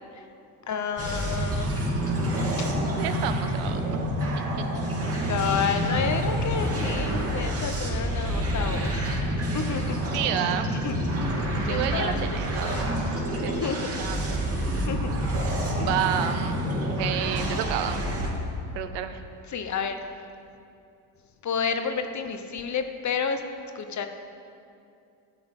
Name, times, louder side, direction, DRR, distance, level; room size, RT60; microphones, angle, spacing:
voice 1, 0.7-1.7 2.6-2.7 5.0-9.2 9.5-10.0 10.3-10.4 10.8-11.0 11.6-12.4 12.6-12.9 13.5-14.1 14.8-15.2 15.8-16.0 19.5-20.0 21.4-23.4 23.7-24.1, left 6 dB, 40° left, 7 dB, 1.0 m, -30 dB
sound 1, 1.0-18.3, equal, 35° right, 2.7 m, -28 dB
voice 2, 2.9-4.0 4.6-4.7 10.1-10.7 11.7-13.5 14.0-14.4 15.7-16.5 17.0-18.0 18.7-19.2, right 10 dB, 80° right, 9 dB, 0.9 m, -30 dB
12.5 x 7.6 x 5.4 m, 2.6 s
supercardioid pair, 85°, 42 cm